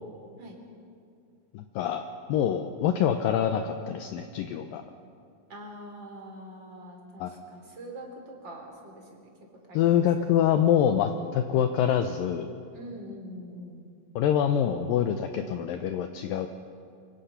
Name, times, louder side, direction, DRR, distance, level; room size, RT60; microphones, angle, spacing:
voice 1, 1.5-2.0 2.3-4.8 7.2-7.4 9.7-12.5 14.2-16.5, left 9 dB, 75° left, 7 dB, 2.3 m, -25 dB
voice 2, 5.5-9.3 9.7-10.1 12.7-13.9, equal, 30° right, 1 dB, 4.0 m, -44 dB
25.5 x 24.5 x 5.8 m, 2.4 s
omnidirectional pair, 4.5 m